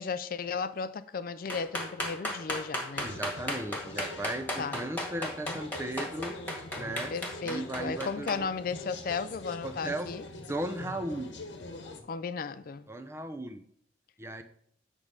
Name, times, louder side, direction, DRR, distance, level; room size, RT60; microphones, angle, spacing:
voice 1, 0.0-3.1 4.6-4.8 7.1-10.2 12.1-12.9, left 5 dB, 50° left, 0.4 m, -35 dB
sound 1, 1.5-8.3, left 1 dB, 10° left, 1.7 m, -34 dB
sound 2, 3.0-12.0, left 2 dB, 85° left, 1.2 m, -44 dB
voice 2, 3.0-6.4 6.8-7.1 7.4-8.5 9.6-10.1 10.4-11.4 12.9-13.6 14.2-14.4, right 1 dB, 15° right, 0.5 m, -36 dB
8.3 x 3.6 x 6.6 m
head